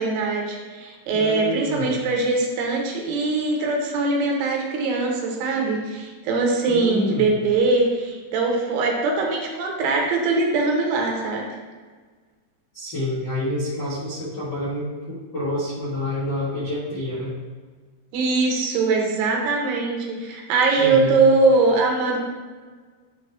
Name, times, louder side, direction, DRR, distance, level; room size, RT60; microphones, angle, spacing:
voice 1, 0.0-11.5 18.1-22.2, right 3 dB, 80° right, 0 dB, 3.1 m, -22 dB
voice 2, 1.1-1.9 6.7-7.3 12.7-17.3 20.8-21.2, left 1 dB, 70° left, -10 dB, 1.0 m, -28 dB
10.0 x 3.5 x 3.4 m, 1.5 s
omnidirectional pair, 4.8 m